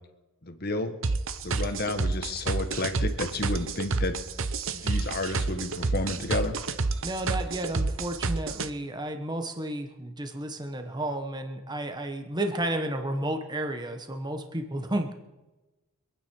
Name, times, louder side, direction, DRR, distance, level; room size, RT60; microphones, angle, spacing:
voice 1, 0.4-0.9 1.4-4.2 4.7-6.5, left 2 dB, 45° left, 6 dB, 1.5 m, -31 dB
sound 1, 1.0-8.7, right 3 dB, 60° right, 0.9 m, -28 dB
voice 2, 7.0-15.1, right 1 dB, 20° right, 6 dB, 1.2 m, -32 dB
26.0 x 9.4 x 4.7 m, 1.1 s
head